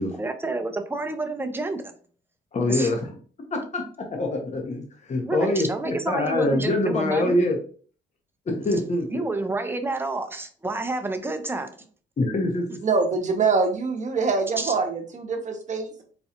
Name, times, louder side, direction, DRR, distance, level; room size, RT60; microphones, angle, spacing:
voice 1, 0.1-2.0 2.7-2.9 5.2-7.4 9.1-11.8 14.6-14.7, right 2 dB, 10° right, 6 dB, 0.5 m, -29 dB
voice 2, 2.5-3.1 3.5-3.8 4.1-7.6 8.5-9.2 12.2-12.8, left 2 dB, 35° left, 3 dB, 0.8 m, -24 dB
voice 3, 12.8-16.0, right 4 dB, 40° right, 4 dB, 0.9 m, -24 dB
4.1 x 2.3 x 2.8 m, 0.43 s
cardioid pair, 90°, 20 cm